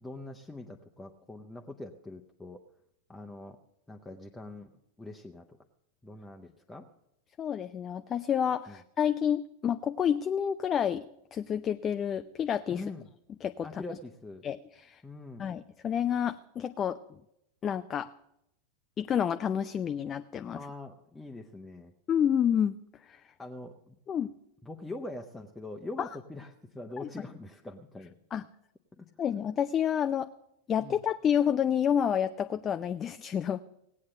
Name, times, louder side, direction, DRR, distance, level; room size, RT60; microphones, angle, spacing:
voice 1, 0.0-2.6 3.1-3.6 3.9-4.7 5.0-5.6 6.0-6.9 8.7-8.8 12.7-13.1 13.6-14.4 15.0-15.5 20.5-21.9 23.4-24.0 24.6-28.2 29.0-29.1 30.8-31.0, left 2 dB, 5° left, 2 dB, 0.8 m, -43 dB
voice 2, 7.4-12.8 13.4-13.8 14.4-15.0 15.4-17.0 17.6-18.1 19.0-20.6 22.1-22.8 23.1-23.2 24.1-24.3 26.0-26.1 27.0-27.1 28.3-28.4 29.2-30.3 30.7-33.6, left 8 dB, 25° left, 10 dB, 0.4 m, -29 dB
18.0 x 8.6 x 6.6 m, 0.82 s
figure-of-eight pair, 90°, 0 cm